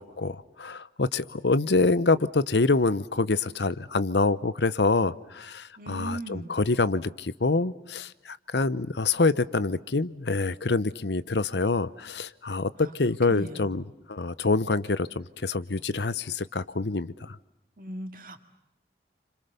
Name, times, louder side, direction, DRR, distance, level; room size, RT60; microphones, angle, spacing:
voice 1, 0.0-17.4, left 3 dB, 80° left, 16 dB, 0.9 m, -26 dB
voice 2, 5.8-6.5 12.8-12.9 13.3-13.8 17.8-18.4, right 1 dB, 50° right, 6 dB, 2.4 m, -38 dB
29.5 x 26.5 x 6.9 m, 0.87 s
head